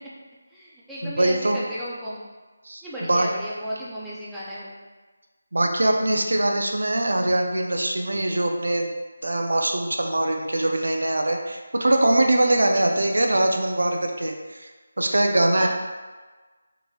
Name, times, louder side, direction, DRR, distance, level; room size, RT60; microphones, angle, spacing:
voice 1, 0.5-2.2 2.8-4.8 15.5-15.7, equal, ahead, -10 dB, 0.4 m, -34 dB
voice 2, 1.0-1.6 2.7-3.3 5.5-8.9 9.2-14.7 15.0-15.7, right 1 dB, 85° right, 3 dB, 0.5 m, -22 dB
3.8 x 2.9 x 2.3 m, 1.3 s
figure-of-eight pair, 170°, 0 cm